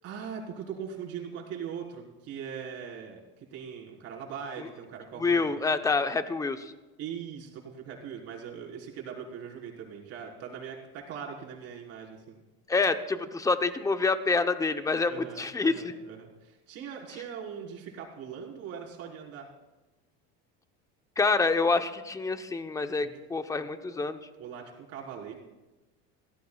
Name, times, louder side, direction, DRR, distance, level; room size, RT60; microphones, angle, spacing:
voice 1, 0.0-5.6 7.0-12.4 15.1-19.5 23.0-23.1 24.4-25.4, right 7 dB, 55° right, -2 dB, 4.2 m, -41 dB
voice 2, 5.2-6.7 12.7-15.9 21.2-24.2, left 4 dB, 10° left, 9 dB, 0.8 m, -27 dB
26.0 x 17.0 x 2.4 m, 1.1 s
cardioid pair, 130°, 30 cm